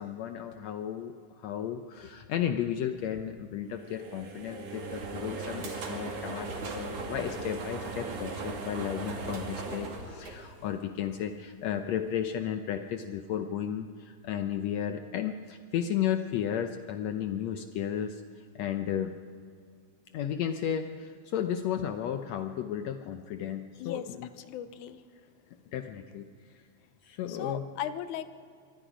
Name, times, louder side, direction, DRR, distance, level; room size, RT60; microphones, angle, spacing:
voice 1, 0.0-18.2 18.6-19.1 20.1-24.3 25.7-26.3 27.0-27.7, left 9 dB, 75° left, 7 dB, 1.8 m, -34 dB
sound 1, 3.7-11.0, right 3 dB, 80° right, 3.8 m, -38 dB
voice 2, 24.4-25.0 27.3-28.4, left 10 dB, 90° left, 12 dB, 2.3 m, -37 dB
26.5 x 23.0 x 5.1 m, 2.1 s
omnidirectional pair, 3.4 m